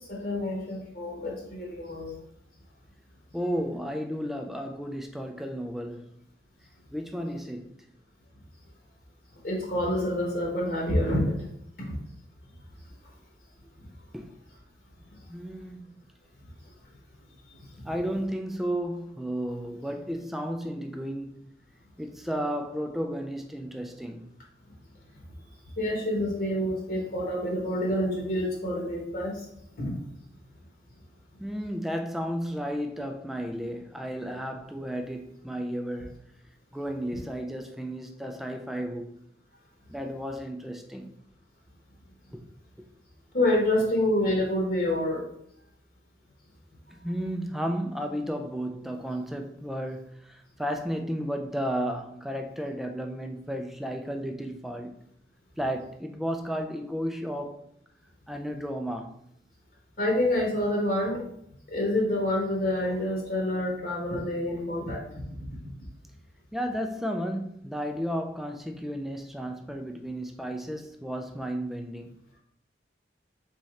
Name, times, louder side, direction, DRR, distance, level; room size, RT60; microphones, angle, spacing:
voice 1, 0.1-2.1 9.4-11.5 11.9-12.0 13.8-13.9 17.7-17.8 25.8-29.5 29.8-29.9 43.3-45.2 60.0-61.2 61.7-65.1, left 1 dB, 50° left, 1.1 m, -27 dB
voice 2, 3.3-6.1 6.9-7.7 14.1-14.3 15.3-15.9 17.8-21.5 22.0-24.3 31.4-36.2 36.7-39.2 39.9-41.1 42.3-42.4 42.8-42.9 47.0-55.0 55.6-57.7 58.3-59.2 66.5-72.1, equal, ahead, 0.3 m, -33 dB
4.1 x 3.6 x 3.2 m
head